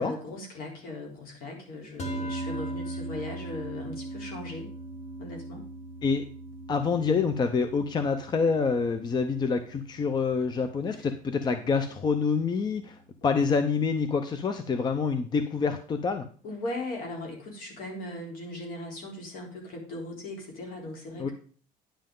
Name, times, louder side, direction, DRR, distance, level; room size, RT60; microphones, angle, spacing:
voice 1, 0.0-4.7 5.2-5.7 10.9-11.0 13.2-13.4 16.4-21.3, left 2 dB, 70° left, 0 dB, 3.6 m, -38 dB
sound 1, 2.0-12.4, right 2 dB, 45° left, 1.6 m, -40 dB
voice 2, 6.7-16.3 21.2-21.3, left 5 dB, 25° left, 9 dB, 0.6 m, -27 dB
10.0 x 7.6 x 3.7 m, 0.43 s
cardioid pair, 145°, 16 cm